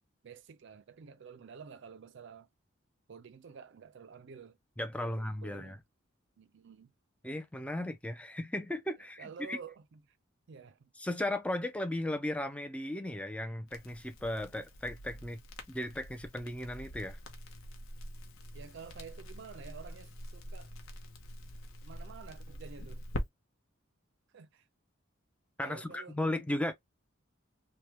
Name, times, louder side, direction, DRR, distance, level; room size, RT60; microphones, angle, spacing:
voice 1, 0.2-2.5 3.1-4.6 5.0-5.8 6.4-6.9 9.2-10.2 10.5-10.9 18.5-20.7 21.8-23.0 24.3-24.6 25.6-26.3, right 6 dB, 60° right, 0.4 m, -50 dB
voice 2, 4.8-5.8 7.2-9.6 11.0-15.4 15.7-17.2 25.6-26.7, left 1 dB, 5° left, 0.4 m, -36 dB
Crackle, 13.7-23.2, equal, 80° left, 0.8 m, -45 dB
3.4 x 2.1 x 2.9 m
head